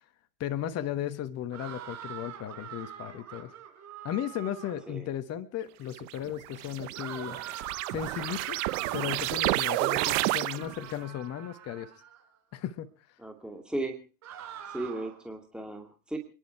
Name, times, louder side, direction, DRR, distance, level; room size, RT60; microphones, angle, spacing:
voice 1, 0.4-3.5 4.0-7.4 7.9-8.6 8.9-11.9 12.5-12.9, left 11 dB, 30° left, 11 dB, 1.3 m, -35 dB
sound 1, 1.5-4.9 6.9-12.2 14.2-15.3, right 9 dB, 35° right, 5.0 m, -44 dB
sound 2, 6.0-10.9, right 20 dB, 50° right, 1.2 m, -30 dB
voice 2, 13.2-14.0 14.7-16.2, right 1 dB, ahead, 3 dB, 2.4 m, -36 dB
28.5 x 11.0 x 4.6 m, 0.36 s
hypercardioid pair, 110°, 48 cm